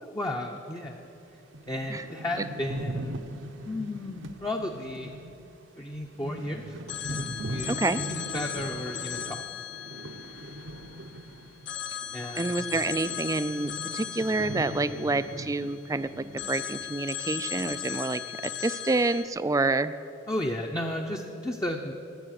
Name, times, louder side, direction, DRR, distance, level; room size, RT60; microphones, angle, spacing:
voice 1, 0.0-1.1 1.7-3.1 3.7-5.1 5.8-6.8 7.1-7.8 8.1-9.4 12.1-12.5 20.3-21.9, left 1 dB, 20° left, 1 dB, 0.7 m, -33 dB
sound 1, 0.8-0.9 1.3-1.4 1.5-11.8 12.0-16.5 16.8-16.9 17.5-18.0, right 1 dB, 75° right, 0.9 m, -40 dB
Telephone, 6.9-11.2 11.7-15.9 16.4-19.2, left 10 dB, 60° left, 0.8 m, -37 dB
voice 2, 7.7-8.0 12.4-18.2 18.6-19.9, right 3 dB, 15° right, 13 dB, 0.4 m, -28 dB
19.5 x 7.8 x 6.5 m, 2.7 s
head